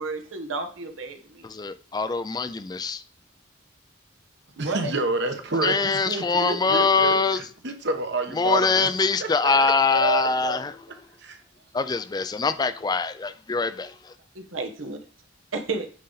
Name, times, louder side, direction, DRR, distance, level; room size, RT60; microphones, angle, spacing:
voice 1, 0.0-1.4 4.6-4.9 14.3-15.0 15.5-15.9, right 3 dB, 85° right, 1.3 m, -32 dB
voice 2, 1.4-3.0 5.6-7.4 8.4-10.7 11.7-14.1, left 4 dB, 20° left, 0.4 m, -23 dB
voice 3, 4.6-8.9 9.2-10.6 11.2-11.4, right 3 dB, 60° right, 1.2 m, -29 dB
9.3 x 4.0 x 4.0 m
head